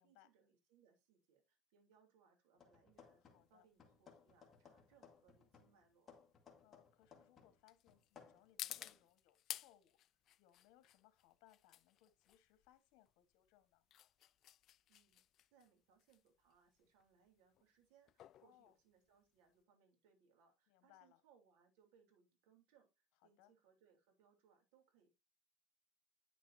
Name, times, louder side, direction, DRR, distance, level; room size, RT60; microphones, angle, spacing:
voice 1, 0.0-6.2 14.9-15.2 15.5-25.1, right 7 dB, 80° right, 3.5 m, -73 dB
sound 1, 2.6-3.5 3.8-7.6 7.9-9.0, left 6 dB, 30° left, 1.7 m, -64 dB
sound 2, 3.0-19.6, left 12 dB, 50° left, 0.3 m, -55 dB
voice 2, 3.2-3.7 6.6-10.0 10.4-13.8 18.4-18.8 20.7-21.2 23.2-23.5, left 13 dB, 75° left, 1.4 m, -70 dB
9.4 x 6.2 x 2.7 m
cardioid pair, 130°, 0 cm